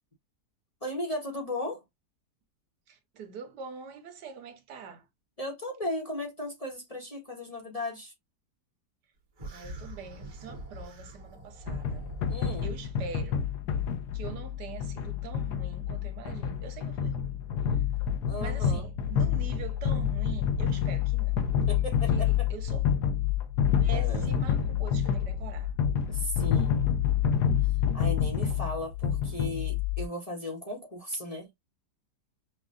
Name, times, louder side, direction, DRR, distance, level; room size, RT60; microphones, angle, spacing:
voice 1, 0.8-1.8 5.4-8.1 12.3-12.7 18.3-18.9 21.7-22.5 23.9-24.3 26.1-27.0 27.9-31.5, left 1 dB, 25° left, 1.0 m, -36 dB
voice 2, 2.9-5.1 9.5-12.1 12.6-13.4 14.1-17.4 17.9-18.0 18.4-21.5 22.1-22.2 22.5-22.9 23.8-25.7, right 6 dB, 80° right, 1.5 m, -44 dB
sound 1, 9.4-12.8, right 1 dB, 55° right, 1.7 m, -43 dB
sound 2, 11.7-30.1, left 8 dB, 80° left, 1.4 m, -28 dB
6.0 x 2.4 x 2.5 m
omnidirectional pair, 1.8 m